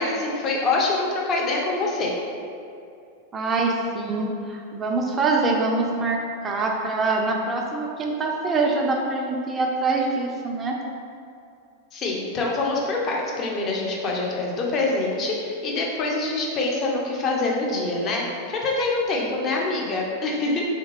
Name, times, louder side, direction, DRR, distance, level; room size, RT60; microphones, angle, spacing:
voice 1, 0.0-2.1 11.9-18.2 18.5-20.6, left 2 dB, 30° left, -2 dB, 0.7 m, -25 dB
voice 2, 3.3-10.8 19.2-19.4, right 3 dB, 20° right, 0 dB, 0.5 m, -24 dB
3.6 x 3.5 x 3.1 m, 2.5 s
figure-of-eight pair, 90°, 0 cm